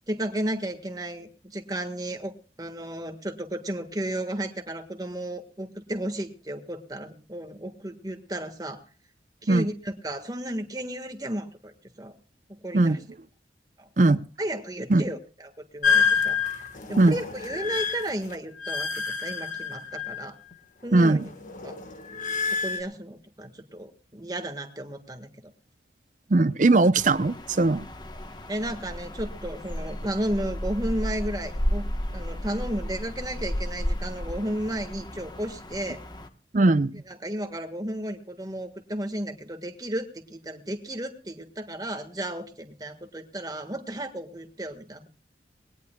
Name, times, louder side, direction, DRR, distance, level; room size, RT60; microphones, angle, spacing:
voice 1, 0.1-8.8 9.4-12.1 12.6-13.0 13.8-20.4 20.8-21.3 21.6-21.8 22.6-25.4 28.5-31.8 32.1-36.0 37.1-45.1, right 1 dB, 20° right, 6 dB, 1.6 m, -33 dB
sound 1, 15.8-20.5 20.9-22.8, left 6 dB, 45° left, 1.4 m, -28 dB
voice 2, 20.9-21.3 26.3-27.8 36.5-37.0, right 2 dB, 45° right, 15 dB, 0.6 m, -19 dB
sound 2, 27.0-36.3, equal, 25° left, 1.1 m, -33 dB
21.5 x 18.0 x 2.3 m, 0.37 s
head